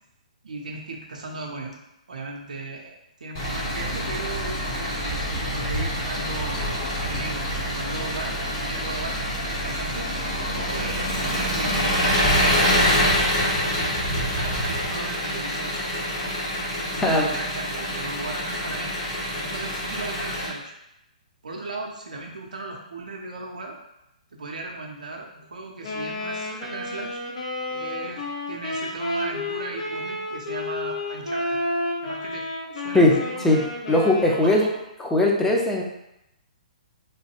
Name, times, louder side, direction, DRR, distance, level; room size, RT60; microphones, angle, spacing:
voice 1, 0.4-1.7 2.1-6.6 7.0-10.1 10.7-13.0 13.6-16.2 16.9-18.9 19.3-20.7 21.4-23.8 24.3-27.2 27.7-31.6 32.0-32.5 32.7-33.6 34.4-34.7, right 3 dB, 75° right, 0 dB, 0.5 m, -36 dB
Engine, 3.3-20.5, equal, 40° left, 1.0 m, -26 dB
Wind instrument woodwind instrument, 25.8-34.9, left 1 dB, 60° left, 0.6 m, -31 dB
voice 2, 33.9-34.6 35.0-35.8, left 1 dB, 10° left, -1 dB, 0.5 m, -19 dB
3.0 x 2.2 x 3.0 m, 0.85 s
figure-of-eight pair, 125°, 4 cm